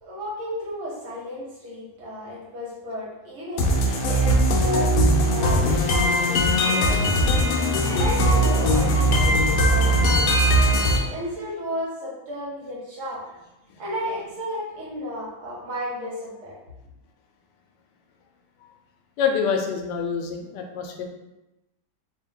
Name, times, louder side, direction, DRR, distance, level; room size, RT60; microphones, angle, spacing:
voice 1, 0.0-5.0 5.3-7.1 7.8-10.3 10.9-13.2 13.8-16.5, equal, 65° right, -7 dB, 1.9 m, -33 dB
sound 1, 3.6-11.0, equal, 70° left, 0.9 m, -20 dB
voice 2, 19.2-21.0, left 6 dB, 85° left, 3 dB, 1.2 m, -27 dB
3.6 x 2.8 x 3.6 m, 0.99 s
omnidirectional pair, 1.8 m